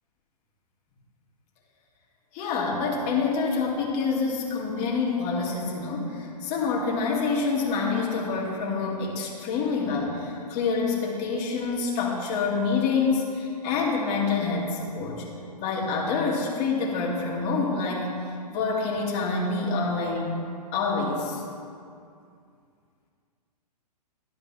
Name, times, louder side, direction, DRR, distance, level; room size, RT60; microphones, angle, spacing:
voice 1, 2.3-15.2 15.6-20.3 20.7-21.4, left 4 dB, 35° left, -2 dB, 2.4 m, -27 dB
12.0 x 5.2 x 7.3 m, 2.4 s
figure-of-eight pair, 115°, 21 cm